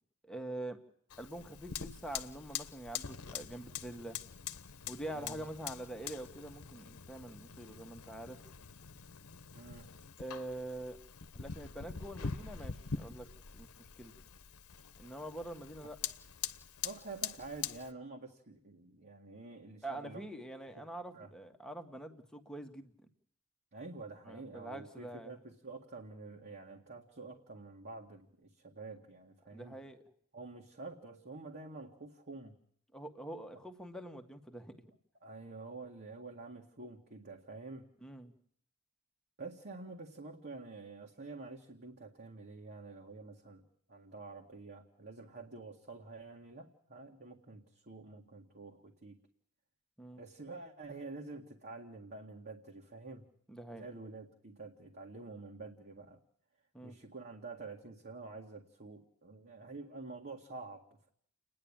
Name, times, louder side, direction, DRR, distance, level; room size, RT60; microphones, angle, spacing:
voice 1, 0.2-0.8 1.2-4.2 4.9-8.4 10.2-11.0 11.3-13.3 13.5-13.7 13.9-14.1 15.0-16.0 19.8-22.9 24.3-25.3 29.5-30.0 32.9-34.7 38.0-38.3 50.0-50.2 53.5-53.8 56.7-57.0, right 1 dB, 5° left, 5 dB, 1.5 m, -45 dB
Fire, 1.1-17.9, left 7 dB, 85° left, 1.1 m, -44 dB
voice 2, 5.1-5.5 9.5-9.9 16.8-20.2 21.1-21.3 23.7-29.8 30.3-32.6 35.2-37.9 39.4-43.6 43.9-49.2 50.2-53.3 53.7-56.2 56.8-61.1, right 3 dB, 45° right, 0 dB, 2.0 m, -48 dB
30.0 x 10.5 x 8.8 m, 0.64 s
head